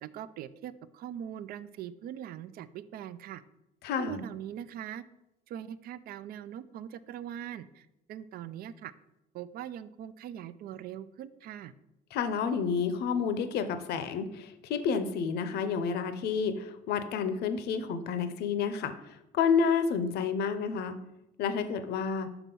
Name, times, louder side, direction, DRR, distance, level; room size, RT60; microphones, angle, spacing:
voice 1, 0.0-3.4 4.0-5.0 5.5-8.9 9.3-11.7, right 10 dB, 65° right, 15 dB, 0.4 m, -41 dB
voice 2, 3.8-4.2 12.1-21.0 21.4-22.3, left 6 dB, 75° left, 10 dB, 0.7 m, -30 dB
5.9 x 4.2 x 5.3 m, 0.90 s
cardioid pair, 110°, 17 cm